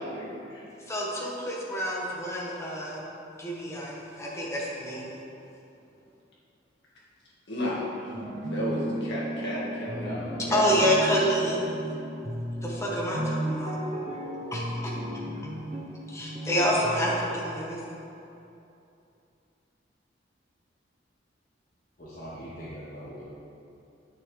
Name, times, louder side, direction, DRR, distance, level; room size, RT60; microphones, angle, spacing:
voice 1, 0.0-0.7 7.5-8.1 8.5-10.2 10.5-10.8, left 1 dB, 65° left, -6 dB, 1.8 m, -33 dB
voice 2, 0.9-3.0 3.4-5.1 10.5-11.6 12.6-13.8 14.5-14.9 16.1-17.8, equal, 15° left, -4 dB, 1.2 m, -28 dB
sound 1, 8.1-17.4, right 1 dB, 35° right, 0.7 m, -34 dB
voice 3, 10.0-10.5 22.0-23.2, equal, 50° left, -10 dB, 1.2 m, -41 dB
8.9 x 6.3 x 3.3 m, 2.8 s
head